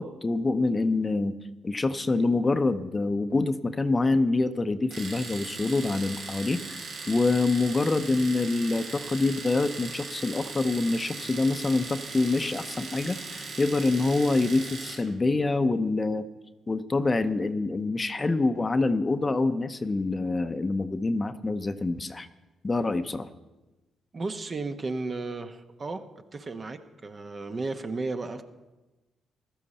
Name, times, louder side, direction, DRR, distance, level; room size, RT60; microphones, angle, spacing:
voice 1, 0.0-1.3 1.6-6.8 7.1-16.2 16.7-22.3 22.6-23.3, left 3 dB, 30° left, 10 dB, 0.7 m, -26 dB
Domestic sounds home sounds, 4.9-15.1, right 3 dB, 70° right, 2.4 m, -39 dB
voice 2, 24.1-26.0 26.3-28.4, right 3 dB, 40° right, 7 dB, 1.0 m, -34 dB
15.0 x 12.0 x 4.3 m, 1.1 s
supercardioid pair, 55°, 0 cm